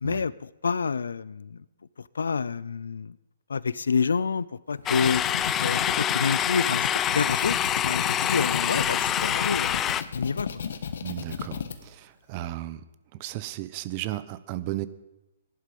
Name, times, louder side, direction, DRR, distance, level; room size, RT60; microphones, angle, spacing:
voice 1, 0.0-1.6 2.0-3.2 3.5-5.2 5.6-6.9 7.1-9.8 10.1-10.5, left 5 dB, 85° left, 20 dB, 0.6 m, -28 dB
sound 1, 4.7-11.8, left 7 dB, 70° left, 1.5 m, -35 dB
sound 2, 4.9-10.0, left 10 dB, 20° left, 0.5 m, -26 dB
voice 2, 11.0-12.8 13.2-14.9, right 15 dB, 40° right, 15 dB, 0.9 m, -34 dB
17.0 x 11.5 x 5.4 m, 0.99 s
hypercardioid pair, 140°, 0 cm